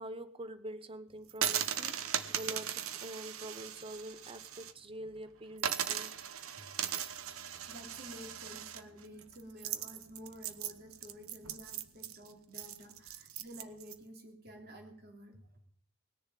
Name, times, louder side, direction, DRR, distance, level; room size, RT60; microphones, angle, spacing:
voice 1, 0.0-1.9 2.3-6.1, right 1 dB, 25° right, 12 dB, 0.9 m, -45 dB
sound 1, 1.3-4.7 5.1-5.2 5.6-13.9, right 9 dB, 85° right, 1.1 m, -38 dB
Bowed string instrument, 6.8-12.6, right 2 dB, 65° right, 3.5 m, -66 dB
voice 2, 7.7-15.6, equal, 45° right, 3 dB, 3.2 m, -51 dB
19.5 x 7.0 x 9.2 m, 0.64 s
head